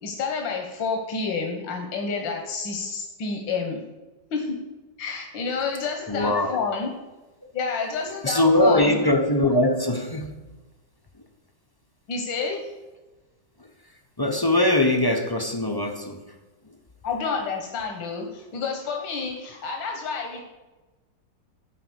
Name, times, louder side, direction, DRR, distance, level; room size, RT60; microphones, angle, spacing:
voice 1, 0.0-3.8 4.3-4.6 5.0-6.9 7.5-9.0 12.1-12.6 17.0-20.4, left 5 dB, 80° left, 2 dB, 1.9 m, -29 dB
voice 2, 6.1-6.7 8.2-10.4 11.1-11.2 13.6-16.4 16.6-16.8, left 1 dB, 30° left, 3 dB, 0.4 m, -22 dB
12.5 x 5.1 x 7.9 m, 1.2 s
omnidirectional pair, 2.0 m